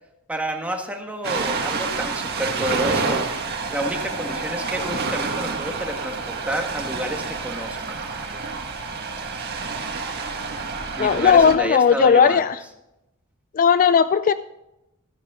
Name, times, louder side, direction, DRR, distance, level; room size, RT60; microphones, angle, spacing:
voice 1, 0.3-3.2 3.7-8.0 10.9-12.4, right 1 dB, 5° right, 3 dB, 1.5 m, -29 dB
Ocean, 1.2-11.5, right 4 dB, 50° right, 1.7 m, -28 dB
voice 2, 11.0-12.6 13.5-14.3, left 7 dB, 40° left, 13 dB, 0.3 m, -16 dB
13.5 x 10.5 x 3.7 m, 0.89 s
head